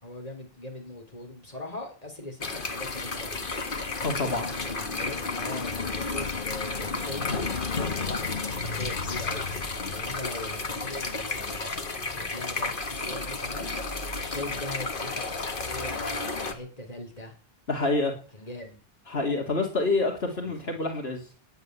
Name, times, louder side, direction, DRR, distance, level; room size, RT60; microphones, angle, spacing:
voice 1, 0.0-3.5 4.0-7.5 8.0-9.5 9.9-11.7 12.1-13.7 14.2-17.3 18.3-18.8 20.4-20.8, left 1 dB, 40° left, 3 dB, 4.2 m, -41 dB
sound 1, 2.4-16.5, left 3 dB, 55° left, 1.8 m, -32 dB
voice 2, 4.0-4.5 17.7-18.1 19.1-21.2, left 3 dB, 75° left, 2 dB, 2.7 m, -27 dB
12.0 x 10.0 x 9.6 m, 0.40 s
omnidirectional pair, 1.0 m